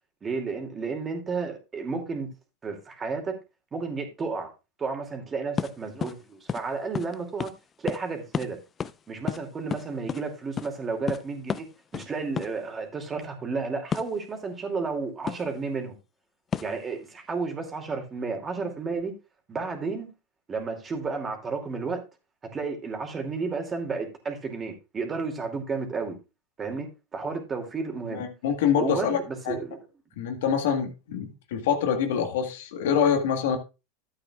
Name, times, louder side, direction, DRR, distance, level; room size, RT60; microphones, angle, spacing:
voice 1, 0.2-2.3 2.6-3.3 3.7-4.5 4.8-7.5 7.8-8.6 9.1-11.7 11.9-15.9 16.6-19.1 19.5-20.1 20.5-22.0 22.5-26.2 26.6-28.2 28.8-29.8 30.5-30.6, right 4 dB, 25° right, 2.6 m, -32 dB
sound 1, 5.6-5.7 6.0-6.2 6.5-6.6 6.9-7.1 7.4-7.5 7.9-8.0 8.3-8.5 8.8-9.0 9.3-10.2 10.6-10.7 11.1-11.2 11.5-11.7 11.9-12.1 12.4-12.5 13.9-14.1 15.3-15.5 16.5-16.8, left 7 dB, 30° left, 0.4 m, -30 dB
voice 2, 28.1-29.2 29.5-29.6 30.2-33.6, left 7 dB, 75° left, 1.6 m, -25 dB
12.5 x 8.6 x 2.4 m
hypercardioid pair, 100°, 0 cm